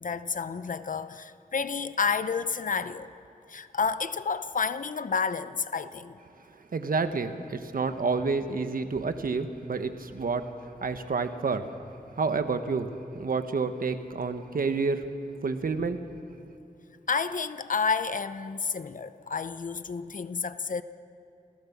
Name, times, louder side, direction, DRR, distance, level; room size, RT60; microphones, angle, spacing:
voice 1, 0.0-3.1 3.5-6.2 17.1-20.8, left 5 dB, 60° left, 12 dB, 0.8 m, -30 dB
voice 2, 6.5-11.7 12.1-15.1 15.4-16.1, right 4 dB, 70° right, 8 dB, 1.2 m, -29 dB
28.0 x 16.0 x 7.3 m, 2.7 s
wide cardioid pair, 110°, 15 cm